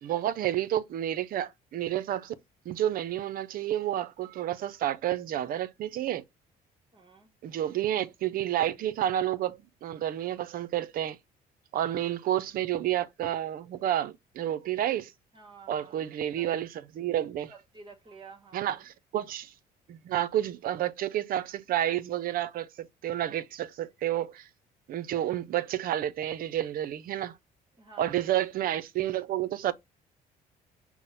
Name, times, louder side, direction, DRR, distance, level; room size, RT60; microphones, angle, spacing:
voice 1, 0.0-2.3 2.7-6.2 7.4-11.2 11.7-15.1 15.7-17.5 18.5-19.5 19.9-24.5 24.9-27.4 28.0-29.7, right 12 dB, 60° right, 0.5 m, -30 dB
voice 2, 6.9-7.3 15.3-16.6 17.5-18.8 27.7-28.3, right 5 dB, 30° right, 1.2 m, -51 dB
5.9 x 2.0 x 4.0 m
cardioid pair, 110°, 17 cm